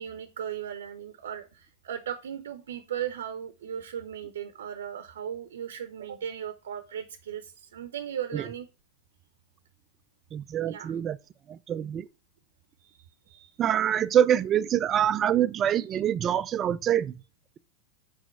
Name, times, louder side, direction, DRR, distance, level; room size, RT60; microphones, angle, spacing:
voice 1, 0.0-8.7 10.7-10.9 12.8-12.9 13.3-13.5, right 9 dB, 75° right, 0.8 m, -37 dB
voice 2, 10.3-11.2 11.5-12.1 13.6-17.1, right 10 dB, 35° right, 0.5 m, -25 dB
6.1 x 5.0 x 4.5 m
hypercardioid pair, 95°, 0 cm